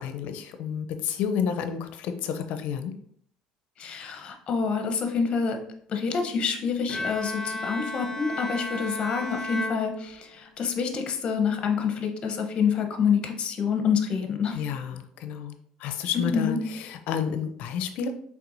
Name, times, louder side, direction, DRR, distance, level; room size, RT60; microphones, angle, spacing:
voice 1, 0.0-2.9 14.5-15.6 15.8-18.1, left 7 dB, 70° left, 8 dB, 0.5 m, -30 dB
voice 2, 3.8-5.6 5.9-14.6 16.1-16.6, left 6 dB, 45° left, 5 dB, 0.8 m, -27 dB
Bowed string instrument, 6.9-10.6, left 2 dB, 10° left, 0.8 m, -34 dB
4.4 x 3.6 x 2.6 m, 0.65 s
supercardioid pair, 100°, 3 cm